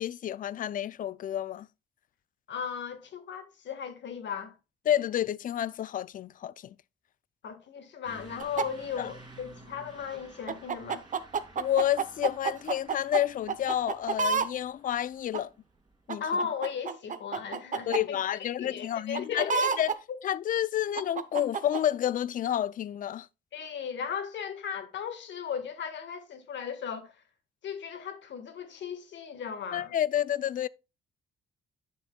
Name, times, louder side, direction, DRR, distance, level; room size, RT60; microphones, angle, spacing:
voice 1, 0.0-1.7 4.9-6.8 9.0-9.1 11.6-15.5 16.1-16.2 17.9-19.5 19.8-19.9 20.2-23.3 29.7-30.7, left 11 dB, 45° left, 0.4 m, -29 dB
voice 2, 2.5-4.5 7.4-11.1 16.2-19.7 23.5-27.2 27.6-29.9, left 7 dB, 65° left, 1.5 m, -36 dB
Truck / Accelerating revving vroom, 8.0-16.0, right 2 dB, 20° right, 2.5 m, -53 dB
sound 1, 8.4-8.6 10.5-13.2 13.5-14.5 15.3-15.4 16.1-18.0 19.1-20.0 21.0-21.8, right 5 dB, 40° right, 0.7 m, -29 dB
10.0 x 6.6 x 2.2 m
cardioid pair, 90°, 20 cm